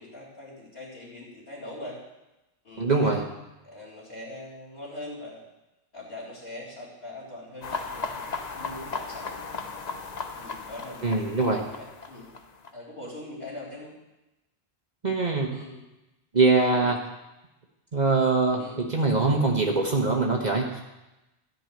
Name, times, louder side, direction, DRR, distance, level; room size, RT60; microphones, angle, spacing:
voice 1, 0.0-2.0 2.6-3.3 3.6-5.4 5.9-9.4 10.3-12.3 12.7-13.9 15.5-15.8 16.6-16.9 18.6-18.8, left 1 dB, 70° left, -7 dB, 4.0 m, -42 dB
voice 2, 2.8-3.2 11.0-11.6 15.0-15.5 16.3-17.0 17.9-20.8, right 3 dB, 45° right, 1 dB, 1.4 m, -23 dB
sound 1, 7.6-12.7, left 4 dB, 45° left, 0.9 m, -36 dB
13.5 x 5.6 x 9.1 m, 0.99 s
omnidirectional pair, 1.1 m